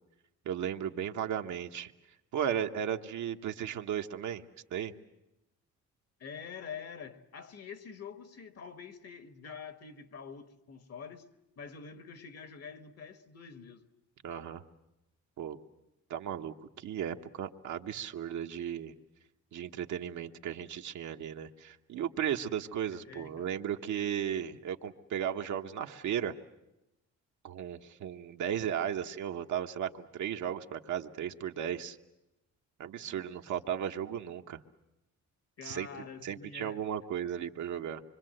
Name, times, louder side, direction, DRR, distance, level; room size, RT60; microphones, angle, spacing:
voice 1, 0.4-1.9 2.3-4.4 4.7-4.9 14.2-14.6 15.4-15.6 16.1-18.9 19.5-26.4 27.4-32.0 32.8-34.6 35.6-35.9 36.2-38.0, right 9 dB, 70° right, 1.2 m, -35 dB
voice 2, 6.2-11.3 11.6-13.9 23.0-23.5 33.0-33.2 35.6-36.8, left 6 dB, 55° left, 1.7 m, -46 dB
25.5 x 24.5 x 7.8 m
cardioid pair, 90°, 30 cm